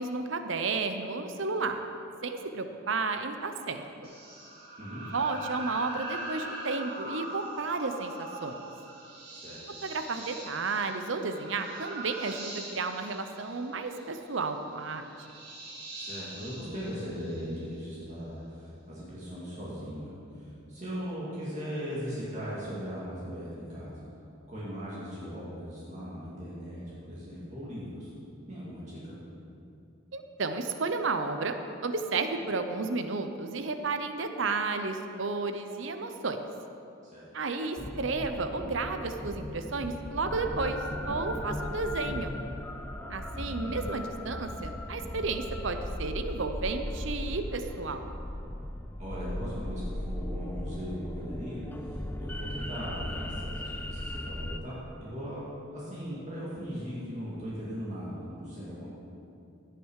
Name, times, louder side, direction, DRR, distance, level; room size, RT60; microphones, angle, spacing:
voice 1, 0.0-1.8 2.2-3.8 5.1-8.7 9.8-15.0 30.1-36.4 37.3-40.8 41.1-42.3 43.1-48.1, right 3 dB, 70° right, 7 dB, 0.7 m, -32 dB
sound 1, 4.0-17.9, right 2 dB, 50° right, 2.7 m, -43 dB
voice 2, 15.9-23.9 24.5-28.1 28.5-29.1 37.1-37.3 42.9-43.2 49.0-58.9, equal, 35° right, -8 dB, 2.3 m, -39 dB
sound 2, 37.8-54.6, left 1 dB, 10° left, 0.3 m, -37 dB
16.5 x 6.7 x 4.8 m, 2.7 s
head